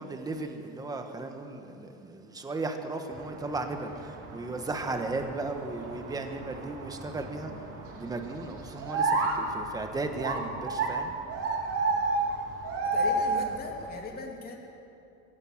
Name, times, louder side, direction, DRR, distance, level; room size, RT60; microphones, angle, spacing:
voice 1, 0.0-7.5 8.0-11.1, right 2 dB, 15° right, 5 dB, 1.4 m, -35 dB
sound 1, 3.1-13.9, right 3 dB, 50° right, 2.7 m, -32 dB
voice 2, 12.8-14.6, left 3 dB, 30° left, 0 dB, 3.2 m, -39 dB
21.5 x 17.0 x 7.5 m, 2.7 s
cardioid pair, 160°, 29 cm